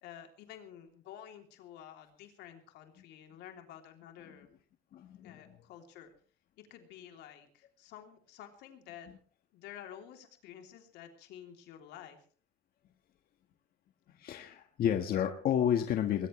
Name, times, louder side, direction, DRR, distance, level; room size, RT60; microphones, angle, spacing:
voice 1, 0.0-4.5 5.2-6.1 6.6-9.1 9.5-12.2, left 10 dB, 85° left, 5 dB, 3.2 m, -51 dB
voice 2, 4.9-5.6 14.1-16.3, left 9 dB, 60° left, 6 dB, 1.6 m, -31 dB
20.5 x 20.5 x 3.3 m, 0.42 s
cardioid pair, 110°, 17 cm